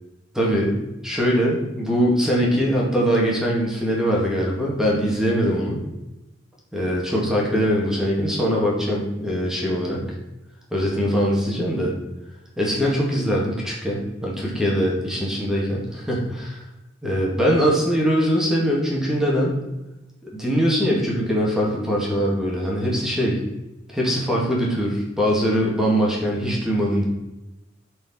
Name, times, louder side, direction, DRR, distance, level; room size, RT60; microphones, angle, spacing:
voice 1, 0.3-5.8 6.7-10.0 10.7-11.9 12.6-16.6 17.0-19.6 20.3-23.4 23.9-27.0, equal, 5° right, -4 dB, 2.2 m, -22 dB
12.5 x 4.7 x 4.5 m, 0.97 s
head